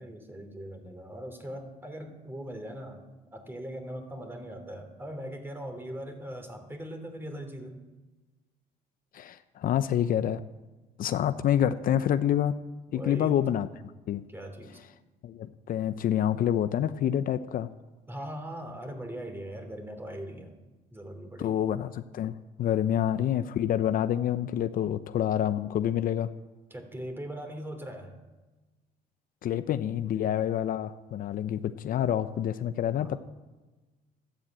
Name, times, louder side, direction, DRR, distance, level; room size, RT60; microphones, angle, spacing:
voice 1, 0.0-3.1 3.3-7.8 12.9-13.6 14.3-14.8 18.1-20.6 20.9-21.6 26.7-28.2 33.0-33.2, right 1 dB, 15° right, 6 dB, 3.1 m, -40 dB
voice 2, 9.1-10.4 11.0-12.6 12.9-13.7 14.1-14.2 15.2-17.7 21.4-26.3 29.4-33.2, left 10 dB, 55° left, 11 dB, 0.7 m, -27 dB
13.0 x 12.0 x 8.8 m, 1.2 s
cardioid pair, 110°, 17 cm